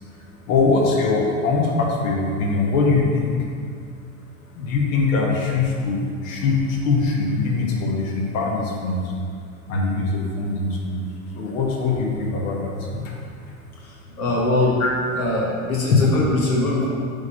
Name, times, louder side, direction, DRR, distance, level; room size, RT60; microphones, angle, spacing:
voice 1, 0.1-3.4 4.5-9.1 9.7-11.1 11.3-13.2 14.8-14.9 15.9-16.0, left 3 dB, 70° left, -1 dB, 1.4 m, -22 dB
voice 2, 13.8-14.8 15.2-16.9, left 2 dB, 90° left, -3 dB, 1.3 m, -22 dB
8.0 x 3.7 x 5.1 m, 2.2 s
hypercardioid pair, 105°, 42 cm